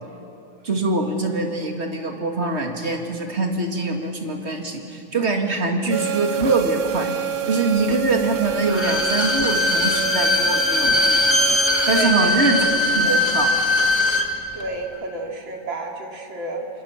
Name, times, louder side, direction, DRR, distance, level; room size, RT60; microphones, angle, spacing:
voice 1, 0.6-7.1 7.5-11.2 11.9-12.6 12.9-13.5, right 3 dB, 35° right, 3 dB, 2.5 m, -23 dB
sound 1, 5.9-12.0, right 9 dB, 60° right, 1.5 m, -28 dB
Bowed string instrument, 8.6-14.3 14.6-14.7, left 2 dB, 15° left, 1.4 m, -20 dB
voice 2, 11.9-13.3 14.5-16.7, right 2 dB, 80° right, 1 dB, 3.5 m, -30 dB
26.5 x 25.5 x 7.4 m, 2.6 s
omnidirectional pair, 2.1 m